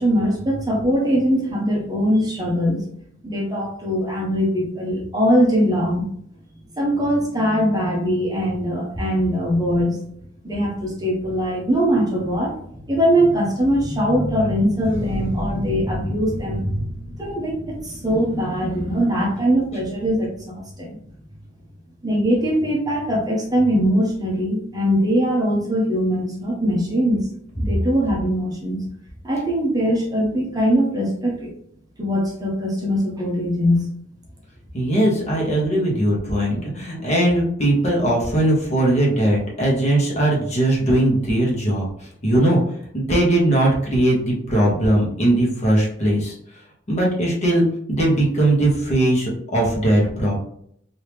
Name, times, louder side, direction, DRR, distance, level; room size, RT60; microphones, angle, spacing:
voice 1, 0.0-6.1 6.8-10.0 10.4-21.0 22.0-27.3 27.6-28.8 29.2-31.5 32.0-33.8, equal, 20° right, -2 dB, 0.8 m, -21 dB
sound 1, 14.7-20.2, right 1 dB, 40° right, 1.2 m, -34 dB
voice 2, 34.7-42.6 42.9-46.3 46.9-50.4, right 1 dB, 35° left, -3 dB, 1.2 m, -19 dB
3.1 x 2.8 x 3.4 m, 0.68 s
head